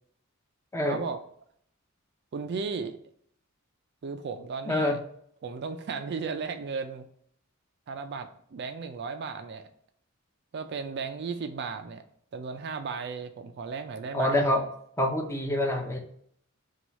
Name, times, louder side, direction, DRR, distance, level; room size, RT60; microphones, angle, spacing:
voice 1, 0.8-1.2 2.3-3.0 4.0-5.0 5.4-7.1 7.9-9.7 10.5-12.0 12.3-14.3, right 5 dB, 50° right, 7 dB, 0.4 m, -35 dB
voice 2, 4.7-5.0 14.1-14.7 15.0-16.0, left 1 dB, 15° left, 3 dB, 0.6 m, -26 dB
4.5 x 2.3 x 4.0 m, 0.65 s
head